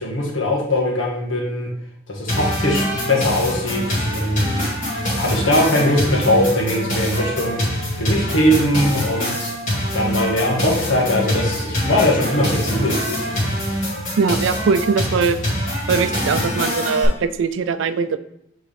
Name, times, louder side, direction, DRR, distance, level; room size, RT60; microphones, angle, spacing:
voice 1, 0.0-1.7 2.1-4.7 5.1-7.6 8.0-9.5 9.9-13.5, left 1 dB, 85° left, -2 dB, 1.6 m, -21 dB
sound 1, 2.3-17.1, equal, 40° left, 2.2 m, -24 dB
voice 2, 14.2-15.4 15.9-18.2, right 5 dB, 75° right, 12 dB, 0.4 m, -20 dB
7.9 x 3.6 x 3.3 m, 0.73 s
head